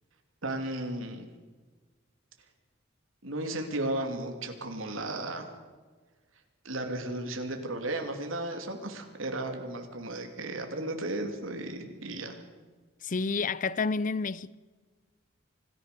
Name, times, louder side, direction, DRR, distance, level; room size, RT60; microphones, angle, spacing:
voice 1, 0.4-1.3 3.2-5.4 6.6-12.4, right 1 dB, 80° right, 2.9 m, -34 dB
voice 2, 13.0-14.6, left 4 dB, 40° left, 0.6 m, -30 dB
25.5 x 15.0 x 6.8 m
head